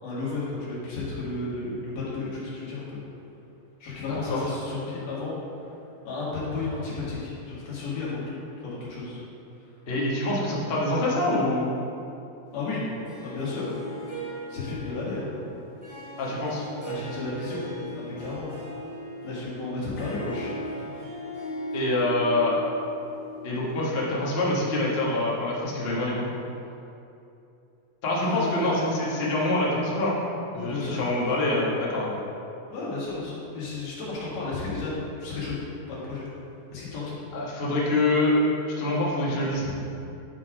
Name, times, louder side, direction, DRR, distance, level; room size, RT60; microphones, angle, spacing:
voice 1, 0.0-3.0 3.8-5.7 6.1-8.4 8.6-9.2 9.6-9.7 12.5-13.0 13.2-13.7 14.5-15.3 16.9-17.7 17.9-18.5 19.2-21.0 21.8-21.9 28.2-29.1 29.4-29.5 30.5-31.0 32.7-34.9 35.2-35.6 35.9-36.3 36.7-37.2 39.6-39.7, left 3 dB, 85° left, -8 dB, 3.5 m, -33 dB
voice 2, 4.1-4.5 9.9-11.7 16.2-16.6 21.7-22.5 23.4-26.2 28.0-30.2 30.5-32.1 37.3-39.7, left 1 dB, 60° left, -6 dB, 0.6 m, -25 dB
Harp, 13.0-24.2, equal, 15° left, 0.9 m, -38 dB
10.5 x 3.7 x 4.9 m, 2.8 s
omnidirectional pair, 3.6 m